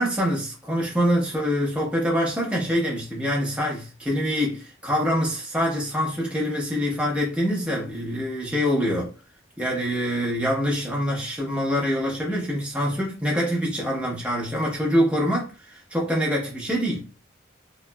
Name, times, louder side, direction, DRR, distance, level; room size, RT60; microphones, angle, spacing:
voice 1, 0.0-9.1 9.6-17.1, equal, 5° right, 0.8 m, -25 dB
2.9 x 2.3 x 2.2 m
head